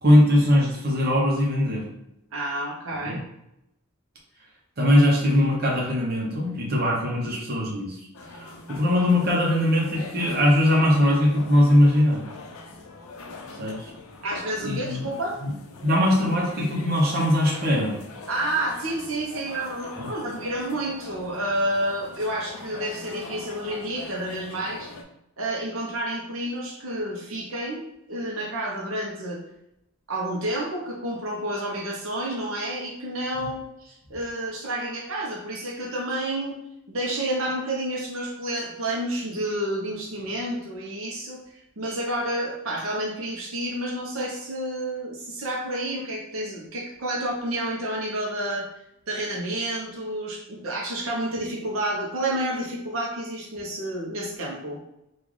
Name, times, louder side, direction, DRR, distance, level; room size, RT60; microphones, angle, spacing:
voice 1, 0.0-1.9 3.0-3.2 4.8-12.3 13.5-13.9 14.6-15.0 15.4-15.5 15.8-18.0 20.0-20.1 33.3-33.5, left 1 dB, 45° right, -3 dB, 0.8 m, -21 dB
voice 2, 2.3-3.2 14.2-15.4 18.3-24.9 25.4-27.8 28.1-29.4 30.1-36.6 36.9-41.4 41.8-48.7 49.1-54.8, right 1 dB, 70° right, -3 dB, 0.7 m, -30 dB
sound 1, 8.1-25.0, left 3 dB, 75° left, 0.5 m, -42 dB
3.8 x 2.4 x 3.1 m, 0.83 s
head